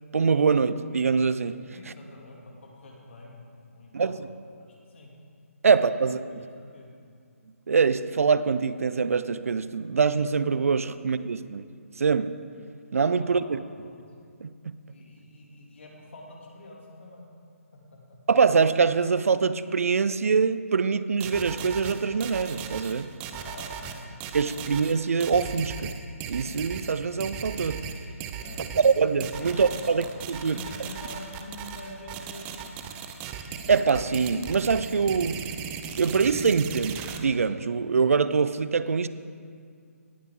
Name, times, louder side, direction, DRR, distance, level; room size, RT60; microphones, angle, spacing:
voice 1, 0.1-1.6 1.9-2.0 3.9-4.3 5.6-6.4 7.7-11.6 12.0-12.3 12.9-13.6 14.4-14.7 18.3-23.1 24.3-25.9 26.3-27.8 28.8-30.6 33.7-35.4 36.0-39.1, right 5 dB, 65° right, 14 dB, 0.5 m, -24 dB
voice 2, 1.7-3.4 3.7-4.2 4.6-5.1 5.6-6.1 6.4-6.9 10.9-11.0 13.2-14.0 14.8-17.3 17.9-18.0 23.2-24.8 28.4-28.9 29.4-30.1 30.3-32.7, left 2 dB, 50° left, -2 dB, 2.8 m, -46 dB
sound 1, 21.2-37.2, right 7 dB, 15° right, 0.6 m, -37 dB
18.0 x 9.1 x 3.8 m, 2.2 s
hypercardioid pair, 155°, 8 cm